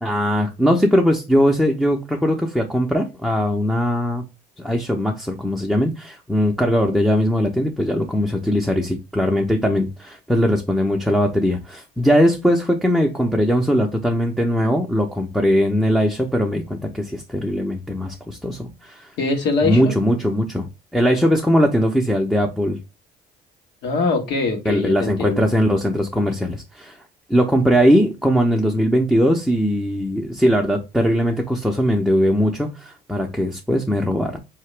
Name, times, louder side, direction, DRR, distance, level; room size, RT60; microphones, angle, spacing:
voice 1, 0.0-4.3 4.6-19.1 19.6-20.7 20.9-22.8 24.6-27.0 27.3-34.4, equal, ahead, 0.5 m, -20 dB
voice 2, 19.2-19.9 23.8-25.5, left 3 dB, 80° left, 1.4 m, -22 dB
4.0 x 2.9 x 3.2 m
cardioid pair, 110°, 17 cm